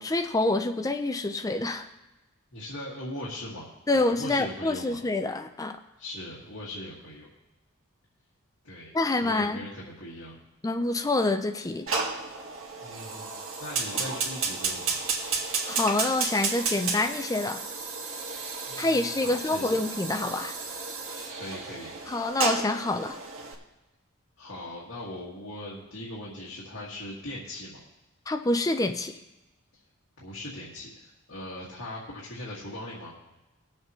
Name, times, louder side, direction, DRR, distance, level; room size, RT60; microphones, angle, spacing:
voice 1, 0.0-1.9 3.9-5.8 8.9-9.6 10.6-11.9 15.7-17.6 18.8-20.6 22.1-23.2 28.3-29.2, left 2 dB, 15° left, 7 dB, 0.4 m, -27 dB
voice 2, 2.5-3.7 3.9-5.0 6.0-7.3 8.6-8.9 9.2-10.3 12.8-13.3 13.6-15.0 18.7-19.8 21.3-22.0 24.4-27.8 30.2-33.1, left 1 dB, 75° left, -6 dB, 2.1 m, -40 dB
Fire, 11.9-23.5, right 4 dB, 75° right, 1.9 m, -32 dB
19.5 x 7.5 x 3.1 m, 1.0 s
head